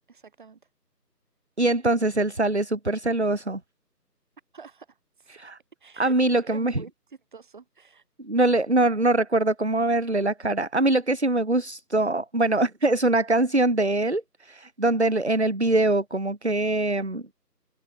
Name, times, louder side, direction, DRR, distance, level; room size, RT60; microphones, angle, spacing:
voice 1, 0.1-0.6 4.5-5.5 5.8-6.9 7.3-8.0, right 5 dB, 30° right, 3.8 m, -47 dB
voice 2, 1.6-3.6 5.3-5.6 6.0-6.8 8.2-17.3, right 2 dB, 45° right, 0.5 m, -23 dB
figure-of-eight pair, 170°, 49 cm